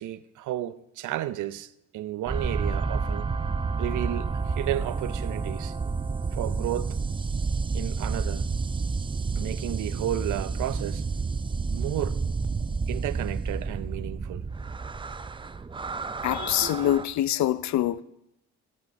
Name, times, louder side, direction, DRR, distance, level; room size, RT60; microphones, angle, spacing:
voice 1, 0.0-3.3 3.8-5.8 6.3-7.0 7.7-8.5 9.4-11.0 11.7-12.2 12.9-14.5 16.6-17.0, right 13 dB, 80° right, 0.6 m, -33 dB
sound 1, 2.3-17.0, right 4 dB, 15° right, 0.4 m, -30 dB
voice 2, 16.2-18.0, left 13 dB, 65° left, 0.6 m, -25 dB
14.0 x 8.6 x 5.3 m
cardioid pair, 90°, 30 cm